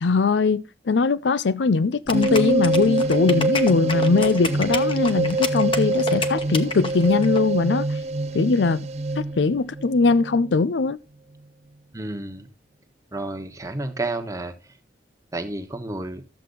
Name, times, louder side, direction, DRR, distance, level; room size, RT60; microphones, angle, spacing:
voice 1, 0.0-7.8 8.3-8.8 9.2-11.0, left 4 dB, 90° left, 0.5 m, -21 dB
sound 1, 2.1-7.4, left 4 dB, 30° left, 1.0 m, -30 dB
sound 2, 2.1-10.7, right 2 dB, 40° right, 0.5 m, -25 dB
voice 2, 11.9-12.5 13.1-14.5 15.3-16.2, right 2 dB, 20° right, 1.2 m, -30 dB
13.0 x 7.5 x 3.9 m
head